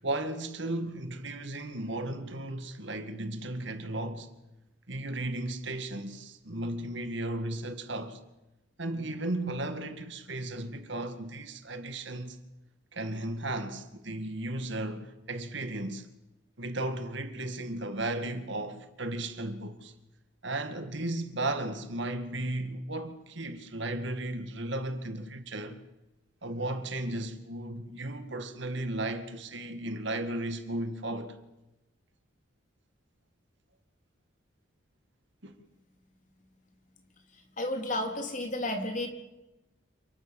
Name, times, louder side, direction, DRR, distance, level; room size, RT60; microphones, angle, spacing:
voice 1, 0.0-4.3 4.9-8.2 8.8-12.4 12.9-16.1 16.6-19.9 20.4-25.8 26.4-31.4 35.4-35.5, right 1 dB, 65° right, 2.1 m, -35 dB
voice 2, 37.3-39.1, left 1 dB, 40° left, 3.8 m, -32 dB
28.5 x 19.5 x 7.1 m
head